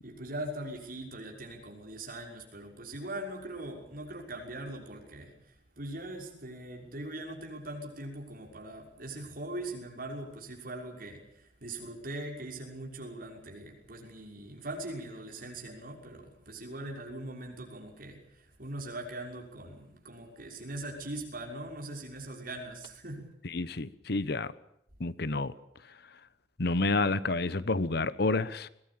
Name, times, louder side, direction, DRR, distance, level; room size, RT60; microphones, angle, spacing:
voice 1, 0.0-5.3 5.8-23.3, right 1 dB, 55° right, 6.1 m, -41 dB
voice 2, 23.4-24.5 25.0-25.5 26.6-28.7, left 3 dB, 65° left, 1.0 m, -29 dB
22.5 x 19.0 x 8.8 m
head